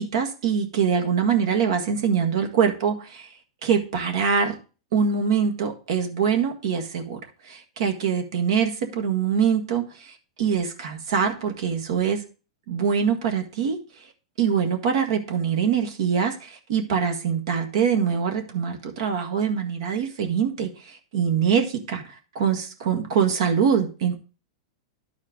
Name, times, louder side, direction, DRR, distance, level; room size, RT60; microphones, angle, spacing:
voice 1, 0.0-3.3 3.6-4.5 4.9-12.2 12.7-13.8 14.4-22.0 22.3-24.2, right 7 dB, 65° right, 5 dB, 1.7 m, -24 dB
11.5 x 4.5 x 3.6 m, 0.34 s
supercardioid pair, 145°, 3 cm